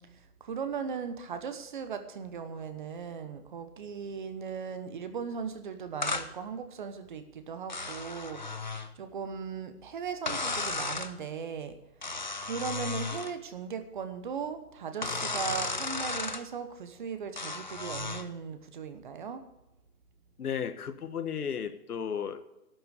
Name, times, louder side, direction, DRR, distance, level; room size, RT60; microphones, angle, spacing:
voice 1, 0.0-11.8 12.4-19.4, right 6 dB, 30° right, 10 dB, 1.0 m, -38 dB
sound 1, 6.0-6.3 7.7-8.9 10.3-11.1 12.0-13.3 15.0-16.4 17.4-18.3, left 3 dB, 30° left, 0.4 m, -34 dB
voice 2, 20.4-22.4, left 7 dB, 70° left, 11 dB, 1.4 m, -34 dB
12.0 x 7.9 x 8.4 m, 0.94 s
hypercardioid pair, 165°, 46 cm